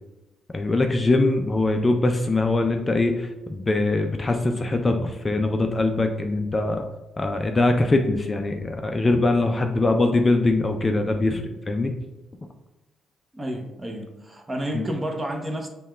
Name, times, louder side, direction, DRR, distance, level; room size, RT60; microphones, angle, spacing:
voice 1, 0.5-6.8 7.2-11.9 14.7-14.8, left 2 dB, 25° left, 5 dB, 0.3 m, -22 dB
voice 2, 13.3-15.7, right 1 dB, 20° right, 4 dB, 0.6 m, -30 dB
5.6 x 2.2 x 3.2 m, 0.99 s
cardioid pair, 90°, 0 cm